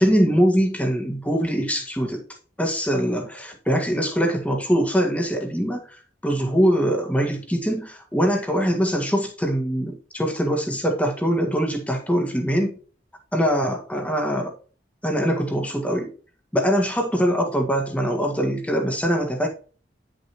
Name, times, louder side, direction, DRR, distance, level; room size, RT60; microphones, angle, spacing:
voice 1, 0.0-2.2 2.6-6.0 6.2-12.8 13.3-14.5 15.0-16.1 16.5-19.5, equal, 10° left, 1.7 m, -22 dB
10.0 x 6.5 x 3.0 m
head